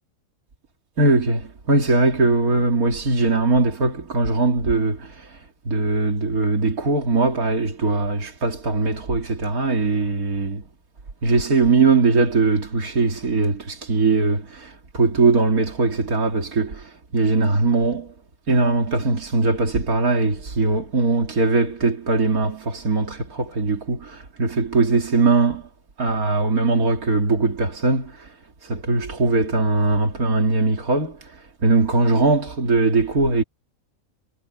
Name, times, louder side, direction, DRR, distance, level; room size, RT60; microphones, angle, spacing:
voice 1, 1.0-10.6 11.2-18.1 18.5-25.7 26.0-28.4 28.6-33.4, right 3 dB, 90° right, 2.8 m, -20 dB
omnidirectional pair, 1.5 m